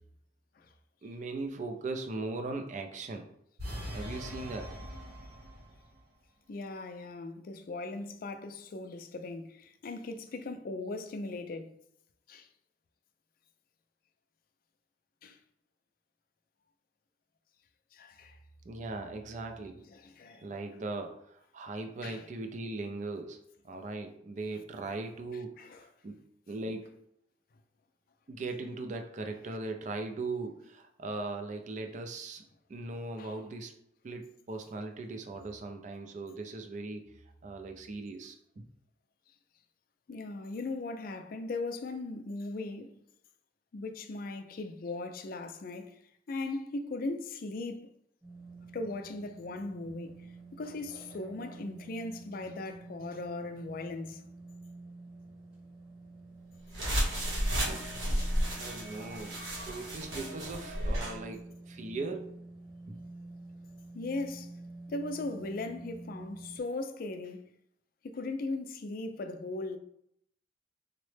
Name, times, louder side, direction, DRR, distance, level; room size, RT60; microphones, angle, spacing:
voice 1, 1.0-3.3 3.9-4.7 18.6-19.8 20.4-26.2 26.5-26.9 28.3-32.4 32.7-33.7 34.0-37.1 37.4-38.7 58.6-62.4 62.9-63.0, right 3 dB, 40° right, 0.3 m, -39 dB
sound 1, 3.6-5.9, equal, 60° right, 0.8 m, -41 dB
voice 2, 6.5-11.7 12.3-12.5 15.2-15.4 17.9-18.4 19.9-20.5 22.0-22.3 25.6-25.8 33.2-33.3 40.1-42.9 43.7-46.0 46.3-47.9 48.7-54.2 58.0-58.4 63.9-64.5 64.9-67.4 68.0-69.8, left 2 dB, 50° left, 0.3 m, -38 dB
sound 2, 48.2-66.6, right 2 dB, 5° right, 1.0 m, -49 dB
sound 3, 56.7-61.2, equal, 80° right, 0.9 m, -32 dB
3.7 x 2.1 x 3.2 m
head